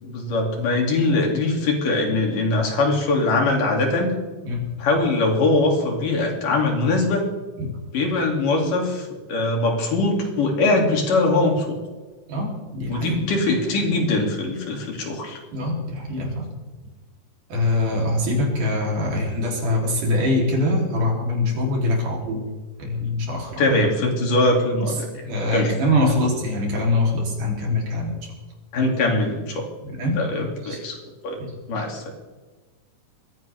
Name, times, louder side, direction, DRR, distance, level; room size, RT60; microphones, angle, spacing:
voice 1, 0.0-4.1 4.8-7.2 7.9-11.8 12.9-15.4 23.6-25.0 25.5-25.7 28.7-29.6 30.2-31.0 31.2-31.4 31.7-32.0, left 2 dB, 75° left, 1 dB, 4.4 m, -22 dB
voice 2, 12.3-13.3 15.5-16.5 17.5-22.4 22.8-23.6 24.9-25.0 25.2-28.2 29.8-30.2 30.6-30.8 31.4-31.5, left 1 dB, 65° right, -1 dB, 5.0 m, -23 dB
21.5 x 16.0 x 3.6 m, 1.3 s
omnidirectional pair, 3.9 m